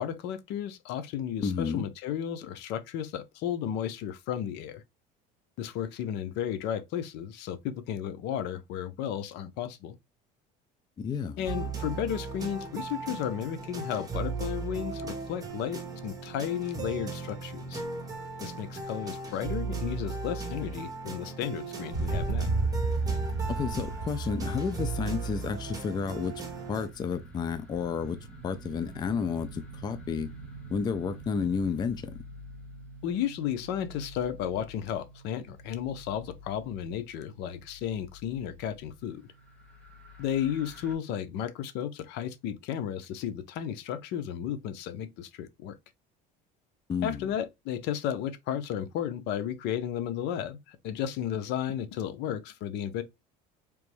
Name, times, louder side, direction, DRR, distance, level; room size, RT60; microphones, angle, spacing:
voice 1, 0.0-4.8 5.6-10.0 11.4-17.8 18.4-22.5 33.0-39.3 40.2-45.8 47.0-53.0, left 9 dB, 65° left, 0.7 m, -33 dB
voice 2, 1.4-1.9 11.0-11.5 23.5-26.4 26.7-30.3 30.7-32.2 46.9-47.3, left 6 dB, 25° left, 0.4 m, -31 dB
sound 1, 11.5-26.9, right 4 dB, 20° right, 1.5 m, -37 dB
sound 2, 21.9-38.9 39.4-40.9, right 3 dB, 5° left, 1.4 m, -38 dB
3.4 x 3.0 x 3.1 m
cardioid pair, 120°, 18 cm